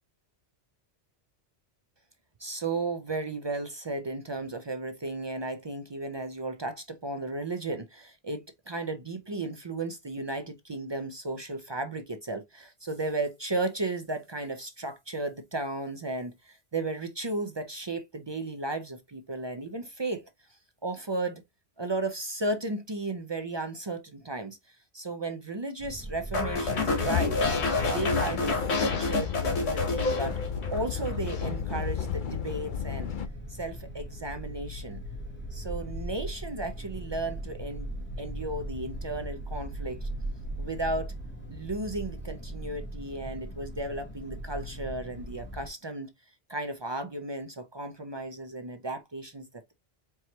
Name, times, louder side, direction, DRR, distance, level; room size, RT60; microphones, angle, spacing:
voice 1, 2.4-20.2 20.8-21.4 21.8-27.4 27.8-30.4 30.7-33.1 33.5-35.0 35.5-40.1 40.6-41.1 41.5-46.1 46.5-49.7, right 2 dB, 40° right, 0.3 m, -34 dB
sound 1, 25.8-45.7, right 1 dB, 10° left, 0.7 m, -39 dB
sound 2, 26.3-30.8 31.1-31.5, left 3 dB, 85° left, 1.4 m, -29 dB
sound 3, 26.6-33.3, left 7 dB, 55° left, 0.7 m, -32 dB
4.6 x 3.0 x 2.8 m
omnidirectional pair, 1.1 m